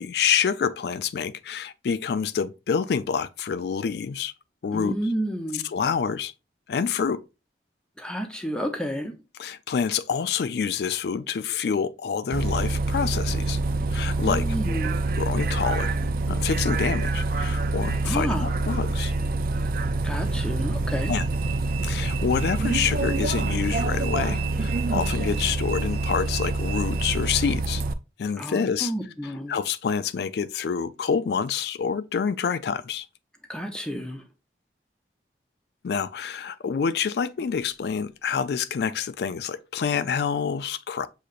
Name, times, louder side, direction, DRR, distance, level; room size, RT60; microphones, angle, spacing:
voice 1, 0.0-4.3 4.6-4.9 5.5-6.3 6.7-7.3 9.4-13.6 13.9-14.4 15.1-15.9 16.3-19.1 21.1-21.2 21.8-27.8 28.2-28.9 29.2-33.1 35.8-41.1, left 6 dB, 65° left, 0.3 m, -27 dB
voice 2, 4.7-5.7 8.0-9.1 14.2-15.0 18.0-18.5 20.0-21.1 28.4-29.6 33.5-34.2, equal, 5° left, 0.6 m, -30 dB
Bus, 12.3-27.9, right 2 dB, 55° right, 0.3 m, -26 dB
6.4 x 2.8 x 2.4 m
head